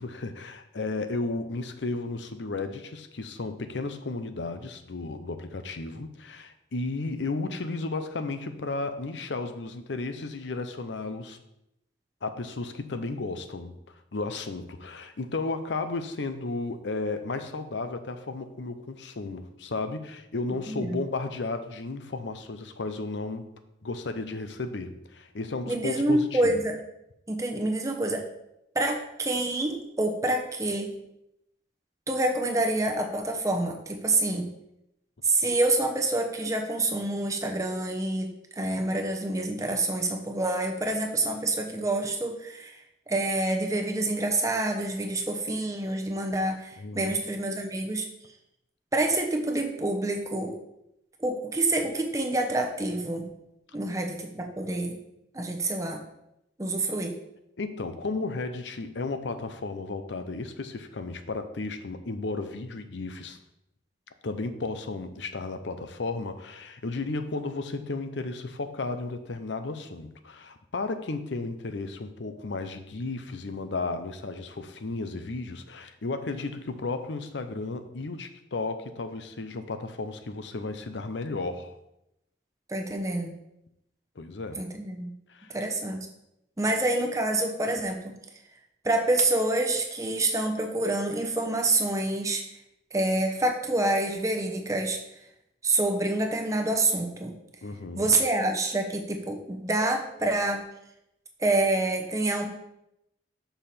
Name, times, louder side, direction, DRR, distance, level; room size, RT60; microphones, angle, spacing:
voice 1, 0.0-11.4 12.2-13.8 14.1-23.5 23.8-26.6 46.8-47.1 57.6-63.4 64.2-81.8 84.2-84.6 85.3-85.6 97.6-98.1, left 3 dB, 85° left, 9 dB, 0.7 m, -34 dB
voice 2, 20.7-21.0 25.7-26.7 27.3-28.2 28.7-30.9 32.1-34.5 35.2-48.1 48.9-50.6 51.2-53.3 53.7-54.9 55.3-56.0 56.6-57.1 82.7-83.3 84.6-85.1 85.5-86.0 86.6-88.1 88.8-92.4 92.9-95.0 95.6-97.4 98.0-100.6 101.4-102.5, right 2 dB, 20° right, 3 dB, 0.8 m, -27 dB
6.8 x 5.6 x 4.2 m, 0.84 s
head